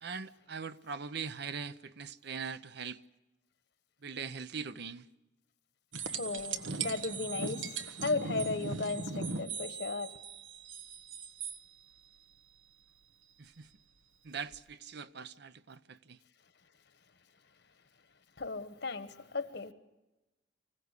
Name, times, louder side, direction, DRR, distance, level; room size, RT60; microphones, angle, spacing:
voice 1, 0.0-3.0 4.0-5.0 13.4-13.7 14.2-16.2, right 5 dB, 60° right, 0.7 m, -41 dB
sound 1, 5.9-11.6 14.5-14.6, right 5 dB, 85° right, 1.2 m, -39 dB
voice 2, 6.1-10.1 18.4-19.7, left 3 dB, 60° left, 1.3 m, -36 dB
25.0 x 16.0 x 8.2 m
head